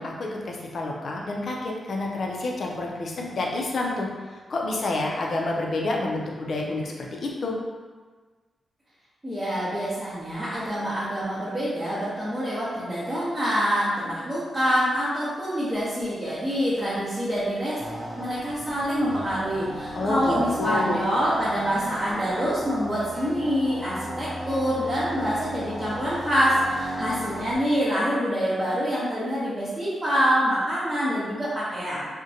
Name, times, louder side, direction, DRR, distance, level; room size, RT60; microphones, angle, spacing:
voice 1, 0.0-4.1 4.5-7.6 19.9-21.0, left 2 dB, 65° left, -1 dB, 0.4 m, -29 dB
voice 2, 9.2-17.8 18.2-32.1, equal, 20° right, -13 dB, 0.8 m, -26 dB
sound 1, 17.8-27.6, equal, 45° right, 0.4 m, -36 dB
2.5 x 2.1 x 2.7 m, 1.4 s
cardioid pair, 75°, 0 cm